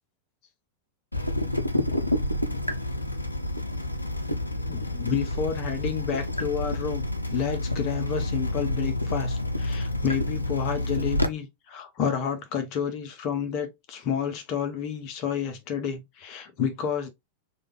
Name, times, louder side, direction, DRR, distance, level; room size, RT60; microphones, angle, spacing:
Water tap faucet / Drip, 1.1-11.3, left 1 dB, 85° left, 0.4 m, -29 dB
voice 1, 4.7-17.1, left 7 dB, 40° left, 0.7 m, -30 dB
3.3 x 2.3 x 3.1 m
figure-of-eight pair, 90°, 0 cm